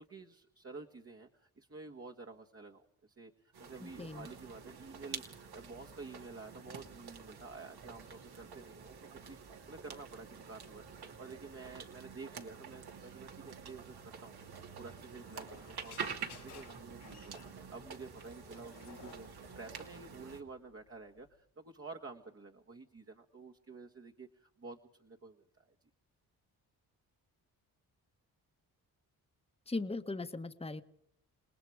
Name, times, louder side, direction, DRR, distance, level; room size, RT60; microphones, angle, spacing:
voice 1, 0.0-10.9 11.2-25.7, right 3 dB, 35° right, 3 dB, 1.6 m, -51 dB
sound 1, 3.5-20.4, right 6 dB, 75° right, 2.8 m, -48 dB
voice 2, 3.8-4.3 29.7-30.8, left 3 dB, 15° left, 8 dB, 1.3 m, -39 dB
sound 2, 14.5-21.4, left 8 dB, 90° left, 3.4 m, -58 dB
29.0 x 19.5 x 4.9 m, 0.67 s
cardioid pair, 65°, 39 cm